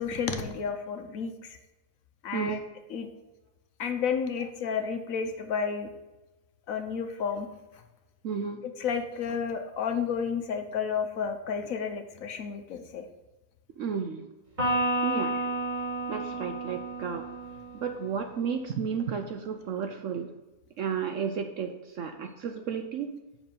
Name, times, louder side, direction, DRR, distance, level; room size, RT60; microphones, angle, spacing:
voice 1, 0.0-1.6 2.2-2.6 2.9-3.1 3.8-5.9 6.7-7.5 8.8-13.0, left 6 dB, 65° left, 6 dB, 1.0 m, -31 dB
voice 2, 8.2-8.6 13.8-14.2 15.0-15.5 16.1-17.3 17.7-20.3 20.8-21.7 22.0-23.1, right 6 dB, 65° right, 6 dB, 0.8 m, -32 dB
Electric guitar, 14.6-18.1, right 1 dB, 25° right, 3.3 m, -31 dB
7.9 x 5.9 x 5.3 m, 1.0 s
omnidirectional pair, 1.7 m